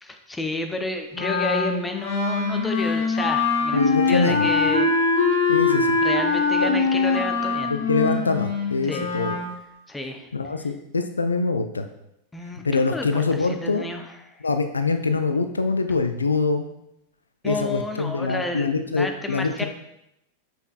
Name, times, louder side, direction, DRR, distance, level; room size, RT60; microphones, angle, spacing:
voice 1, 0.0-4.9 6.0-7.7 8.8-9.1 9.9-10.3 12.3-14.0 17.4-19.7, left 2 dB, 10° left, 4 dB, 0.7 m, -31 dB
Wind instrument woodwind instrument, 1.1-9.5, left 4 dB, 55° left, 1.5 m, -23 dB
voice 2, 3.7-4.5 5.5-6.0 6.6-6.7 7.7-9.4 10.3-11.9 12.6-13.8 14.4-16.7 17.4-19.7, left 3 dB, 75° left, 8 dB, 0.4 m, -24 dB
8.0 x 5.8 x 2.4 m, 0.83 s
figure-of-eight pair, 90°, 0 cm